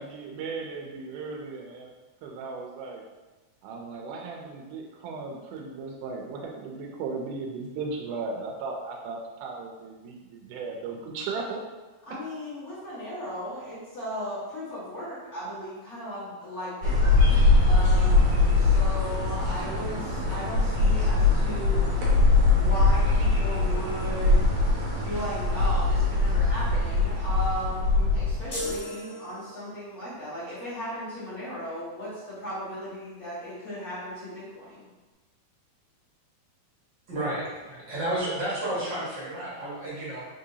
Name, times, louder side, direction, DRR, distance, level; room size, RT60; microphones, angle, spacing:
voice 1, 0.0-1.9 2.2-3.0 3.6-11.6, right 4 dB, 85° right, 0 dB, 2.1 m, -36 dB
voice 2, 12.1-22.2 22.5-24.4 25.0-34.9, equal, 80° left, -12 dB, 0.8 m, -36 dB
sound 1, 16.8-28.8, left 3 dB, 65° right, 1.6 m, -22 dB
sound 2, 28.5-29.9, left 1 dB, 40° left, 0.7 m, -35 dB
voice 3, 37.1-40.2, right 1 dB, 50° right, -9 dB, 1.5 m, -31 dB
4.3 x 3.7 x 2.7 m, 1.2 s
omnidirectional pair, 3.5 m